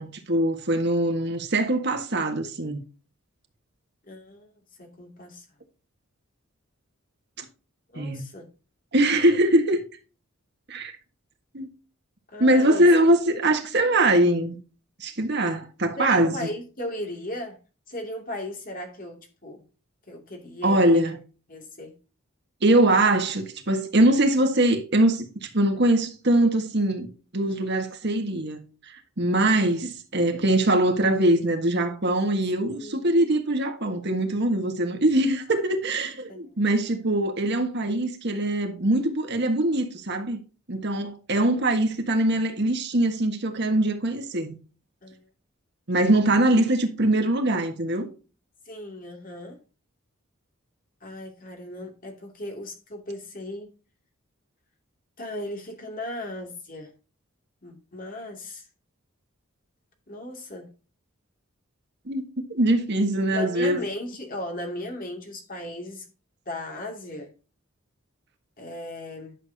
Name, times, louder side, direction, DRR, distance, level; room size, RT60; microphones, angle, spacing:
voice 1, 0.0-2.8 7.4-7.5 7.9-8.2 8.9-9.8 10.7-10.9 11.5-11.7 12.4-14.6 15.0-16.4 20.6-21.2 22.6-27.1 27.3-28.6 28.9-40.4 40.7-44.6 45.9-48.1 62.1-63.8, right 1 dB, 55° right, 1.5 m, -22 dB
voice 2, 4.1-4.5 4.8-5.4 7.9-8.5 12.3-12.9 16.0-17.6 17.9-19.6 20.1-21.0 21.5-21.9 32.7-33.0 36.3-36.4 45.0-45.3 48.7-49.6 51.0-53.7 55.2-56.9 57.6-58.6 60.1-60.7 63.3-66.0 66.5-67.3 68.6-69.4, left 1 dB, 40° left, 2.6 m, -36 dB
11.0 x 7.0 x 2.8 m
head